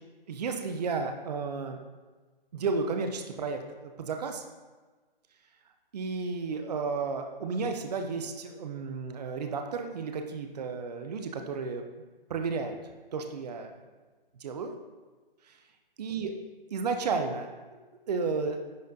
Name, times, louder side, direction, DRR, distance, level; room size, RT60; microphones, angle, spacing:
voice 1, 0.3-1.8 2.5-4.5 5.9-11.8 12.3-12.8 13.1-13.7 14.4-14.7 16.0-16.3 16.7-17.5 18.1-18.6, right 4 dB, 45° right, 5 dB, 0.6 m, -32 dB
10.5 x 4.2 x 2.7 m, 1.3 s
figure-of-eight pair, 145°, 29 cm